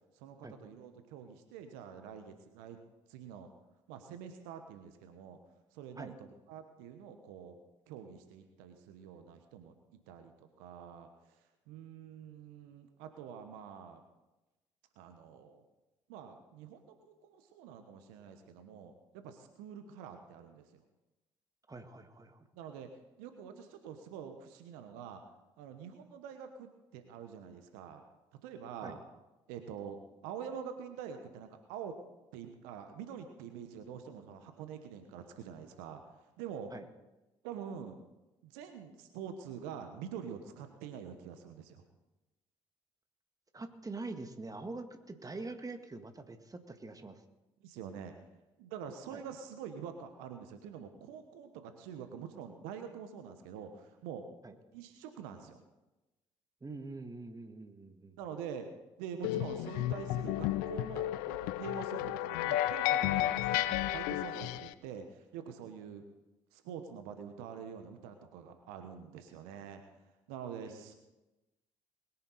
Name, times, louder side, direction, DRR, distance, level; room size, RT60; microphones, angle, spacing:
voice 1, 0.1-2.8 3.1-3.5 3.9-5.4 5.7-7.6 7.9-11.4 11.7-14.0 15.0-15.6 16.1-20.8 22.5-22.9 23.2-25.2 25.6-28.0 28.4-29.0 29.5-32.0 32.3-36.0 36.4-36.7 37.4-38.0 38.4-41.8 47.6-48.1 48.6-54.2 54.7-55.6 58.2-58.7 59.0-66.0 66.5-69.8 70.3-70.9, right 7 dB, 75° right, 7 dB, 1.2 m, -46 dB
voice 2, 21.7-22.5 28.8-29.0 36.7-36.8 43.5-47.2 49.1-49.2 54.4-54.6 56.6-58.2 70.6-70.9, right 3 dB, 25° right, 7 dB, 1.8 m, -44 dB
sound 1, 59.2-64.7, left 14 dB, 75° left, 0.6 m, -32 dB
21.0 x 10.0 x 4.2 m, 1.0 s
hypercardioid pair, 50°, 15 cm